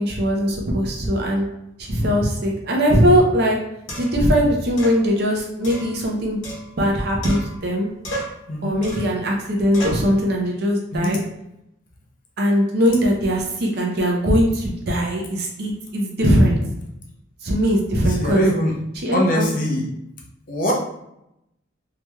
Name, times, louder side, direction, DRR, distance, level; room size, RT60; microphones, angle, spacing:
voice 1, 0.0-1.5 1.8-3.6 4.0-6.4 6.8-7.9 8.6-11.2 12.4-16.6 17.4-18.5 19.0-19.5, equal, 50° right, -1 dB, 0.6 m, -20 dB
sound 1, 3.9-4.3 4.8-5.0 5.6-6.9 7.2-7.8 8.0-8.4 8.8-9.2 9.7-10.1, right 1 dB, 65° left, 1.0 m, -33 dB
voice 2, 8.5-8.8 10.9-11.2 18.1-18.8 19.1-19.8 20.5-20.7, equal, 40° left, -2 dB, 0.6 m, -22 dB
3.1 x 2.8 x 2.2 m, 0.82 s
head